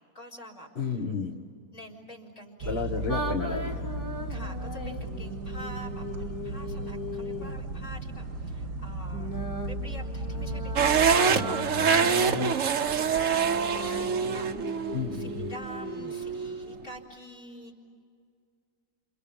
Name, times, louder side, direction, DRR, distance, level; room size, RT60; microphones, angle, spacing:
voice 1, 0.1-1.1 1.7-3.0 4.3-9.3 9.6-17.7, equal, 55° left, 4 dB, 4.5 m, -47 dB
voice 2, 0.8-1.4 2.7-3.9 11.3-12.5 14.9-15.5, left 5 dB, 40° left, 0 dB, 1.5 m, -33 dB
sound 1, 2.6-11.2, right 2 dB, 80° right, 2.1 m, -35 dB
sound 2, 3.1-7.6 9.1-16.1, equal, 10° left, 1.8 m, -38 dB
sound 3, 10.8-16.8, right 6 dB, 55° right, 1.2 m, -26 dB
28.5 x 28.5 x 7.1 m, 2.3 s
omnidirectional pair, 1.8 m